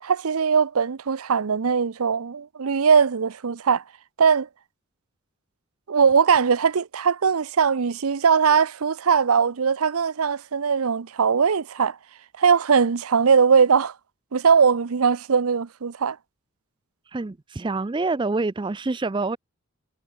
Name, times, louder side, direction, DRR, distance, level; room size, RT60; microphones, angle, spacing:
voice 1, 0.0-3.8 4.2-4.5 5.9-12.0 12.4-13.9 14.3-16.2, right 6 dB, 75° right, 0.6 m, -20 dB
voice 2, 17.1-19.4, right 3 dB, 20° right, 0.4 m, -26 dB
head